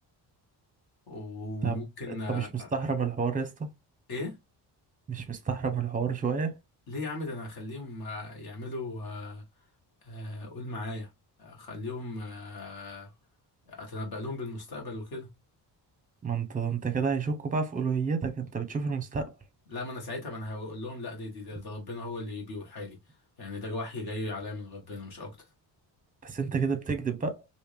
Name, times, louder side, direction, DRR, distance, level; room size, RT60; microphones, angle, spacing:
voice 1, 1.1-2.7 4.1-4.4 6.9-9.4 10.0-11.1 11.4-13.1 13.7-15.3 19.7-23.0 23.4-25.5, left 2 dB, 55° left, 1.7 m, -37 dB
voice 2, 2.3-3.7 5.1-6.6 16.2-19.3 26.2-27.4, right 5 dB, 20° right, 0.7 m, -30 dB
3.3 x 2.7 x 3.3 m
wide cardioid pair, 155°, 43 cm